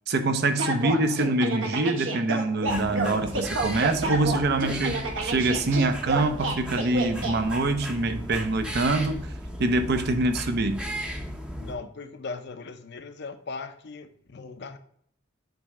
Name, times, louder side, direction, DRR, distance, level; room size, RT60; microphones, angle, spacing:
voice 1, 0.1-9.3 9.6-10.8, right 2 dB, 50° right, 0.6 m, -25 dB
sound 1, 0.6-7.3, right 2 dB, 70° right, 1.2 m, -29 dB
sound 2, 2.7-11.7, equal, 5° right, 0.7 m, -36 dB
voice 2, 11.6-14.8, left 4 dB, 55° left, 0.6 m, -38 dB
8.0 x 3.2 x 4.8 m
head